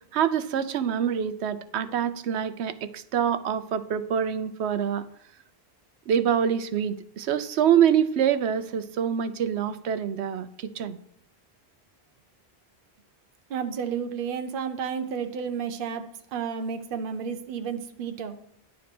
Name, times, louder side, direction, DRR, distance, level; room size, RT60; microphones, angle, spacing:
voice 1, 0.1-5.1 6.1-11.0, right 8 dB, 85° right, 12 dB, 0.9 m, -25 dB
voice 2, 13.5-18.4, right 6 dB, 60° right, 7 dB, 0.8 m, -32 dB
10.5 x 4.2 x 5.9 m, 0.70 s
omnidirectional pair, 1.1 m